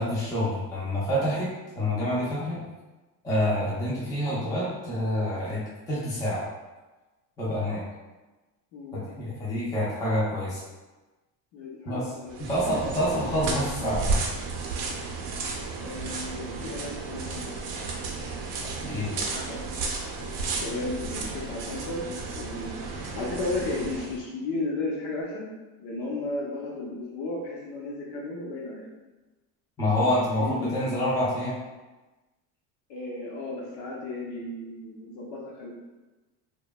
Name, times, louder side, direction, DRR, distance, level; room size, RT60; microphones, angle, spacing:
voice 1, 0.0-1.5 1.7-2.6 3.2-5.6 5.9-6.5 7.4-7.8 8.9-10.6 11.9-12.1 12.5-14.2 18.8-19.2 29.8-31.5, left 1 dB, 10° left, -8 dB, 0.5 m, -27 dB
voice 2, 11.5-12.6 15.8-17.5 18.8-19.6 20.5-25.5 25.8-28.8 30.3-30.8 32.9-35.7, left 2 dB, 55° left, -3 dB, 0.8 m, -34 dB
sound 1, 12.3-24.2, right 3 dB, 45° right, 0.6 m, -33 dB
3.1 x 2.2 x 2.2 m, 1.2 s
supercardioid pair, 125°, 48 cm